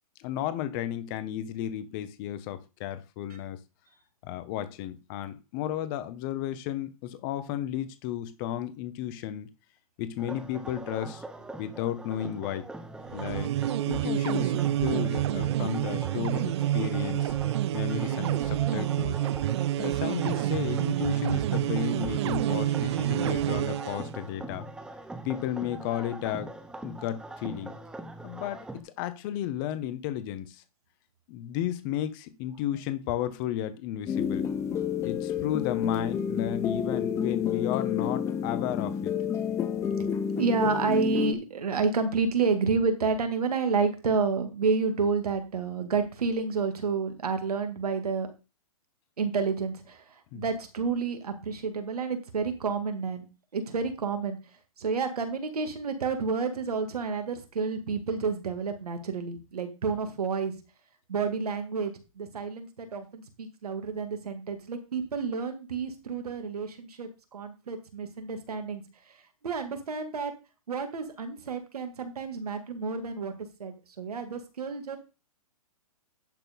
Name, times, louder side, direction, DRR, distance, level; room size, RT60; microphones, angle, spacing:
voice 1, 0.2-3.6 4.2-9.5 10.0-11.2 11.6-12.7 13.1-13.5 13.9-17.3 17.7-19.2 19.8-24.7 25.2-26.5 26.8-27.8 28.2-28.6 28.8-30.6 31.3-34.5 35.0-39.1 50.3-50.4, left 11 dB, 35° left, 1.4 m, -33 dB
sound 1, 10.2-28.8, right 2 dB, 5° right, 1.0 m, -42 dB
sound 2, 13.1-24.1, right 13 dB, 50° right, 0.4 m, -28 dB
sound 3, 34.1-41.3, left 8 dB, 15° left, 0.7 m, -30 dB
voice 2, 40.4-48.3 49.2-53.2 53.5-54.4 54.8-60.5 61.1-69.1 69.4-70.3 70.7-73.3 73.6-75.0, right 5 dB, 85° right, 2.5 m, -30 dB
11.0 x 4.4 x 5.4 m
hypercardioid pair, 145°, 19 cm